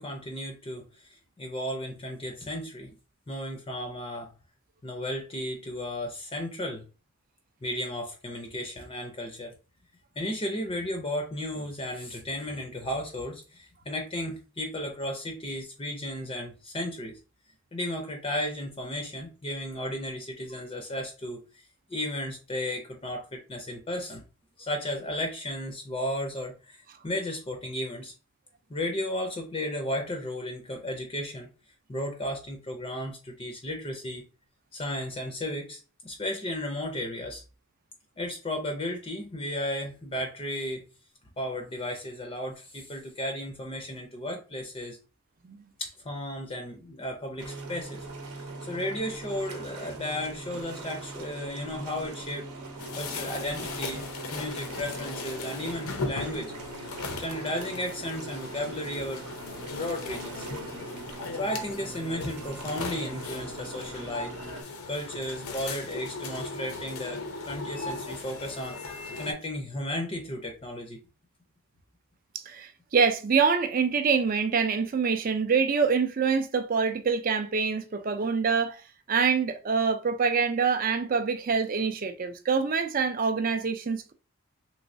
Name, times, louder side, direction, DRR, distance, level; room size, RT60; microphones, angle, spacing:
voice 1, 0.0-2.9 3.3-4.3 4.8-6.9 7.6-9.5 10.2-17.2 17.7-21.4 21.9-24.2 24.6-28.1 28.7-31.5 31.9-34.2 34.7-37.4 38.2-40.9 41.4-45.0 45.8-52.5 53.0-54.0 54.3-56.8 57.2-59.3 59.7-60.5 61.4-64.3 64.9-68.8 69.2-71.0, left 1 dB, 25° left, 0.5 m, -34 dB
sound 1, 47.4-64.6, right 3 dB, 80° right, 0.8 m, -41 dB
sound 2, 52.8-69.3, left 3 dB, 80° left, 0.7 m, -38 dB
voice 2, 72.5-78.8 79.1-84.1, right 5 dB, 40° right, 0.4 m, -25 dB
3.1 x 3.0 x 2.6 m
head